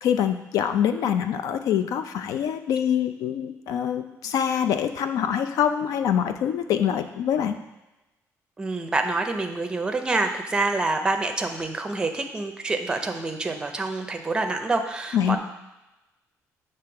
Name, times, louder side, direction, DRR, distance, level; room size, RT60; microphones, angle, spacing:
voice 1, 0.0-7.5 15.1-15.4, left 9 dB, 80° left, 9 dB, 0.5 m, -25 dB
voice 2, 8.6-15.4, right 3 dB, 15° right, 5 dB, 0.5 m, -27 dB
6.9 x 3.3 x 5.8 m, 1.0 s
cardioid pair, 175°, 6 cm